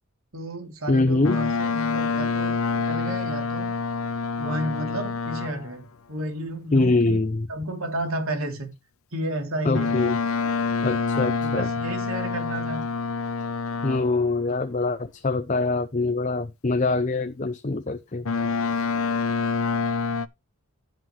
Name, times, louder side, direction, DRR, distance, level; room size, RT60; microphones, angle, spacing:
voice 1, 0.3-3.7 4.3-7.2 7.5-8.7 9.1-9.9 11.4-12.9, right 1 dB, 75° right, 3.2 m, -32 dB
voice 2, 0.9-1.4 6.7-7.5 9.6-10.2 10.8-11.7 13.8-18.3, left 3 dB, 35° left, 0.6 m, -24 dB
Boat Water vehicle, 1.2-5.8 9.7-14.3 18.2-20.3, left 4 dB, 75° left, 0.8 m, -27 dB
15.5 x 5.9 x 3.2 m
head